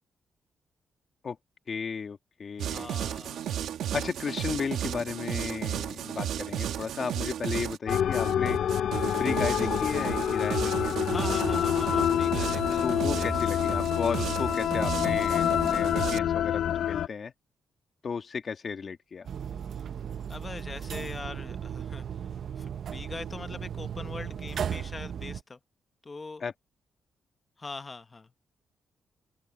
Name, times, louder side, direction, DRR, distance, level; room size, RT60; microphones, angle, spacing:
voice 1, 1.7-2.9 3.9-8.6 9.2-10.9 12.8-17.3 18.0-19.3 26.4-26.5, left 5 dB, 45° left, 1.5 m, -34 dB
voice 2, 2.6-3.4 11.1-13.3 20.3-25.6 26.0-26.4 27.6-28.3, left 3 dB, 25° left, 1.0 m, -42 dB
sound 1, 2.6-16.2, right 10 dB, 90° right, 1.3 m, -34 dB
sound 2, 7.9-17.1, left 10 dB, 75° left, 0.4 m, -27 dB
sound 3, 19.3-25.4, right 8 dB, 60° right, 0.6 m, -36 dB
open air
cardioid pair, 120°, 0 cm